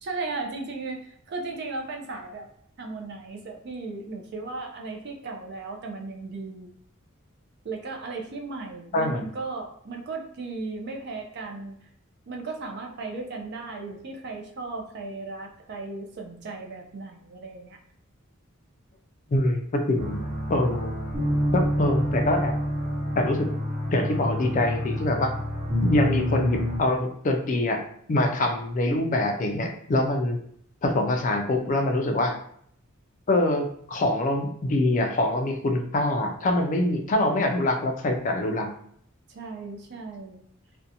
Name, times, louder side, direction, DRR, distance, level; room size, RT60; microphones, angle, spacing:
voice 1, 0.0-2.5 2.8-6.7 7.6-11.8 12.3-17.8 39.3-40.4, right 3 dB, 55° right, 2 dB, 0.4 m, -36 dB
voice 2, 8.9-9.3 19.3-20.2 20.5-20.9 21.5-22.5 23.1-23.5 23.9-25.3 25.8-27.8 28.1-30.4 30.8-32.3 33.3-38.7, left 1 dB, 40° left, 3 dB, 0.4 m, -24 dB
sound 1, 20.0-26.8, equal, 25° right, 0.9 m, -27 dB
2.5 x 2.1 x 2.7 m, 0.66 s
head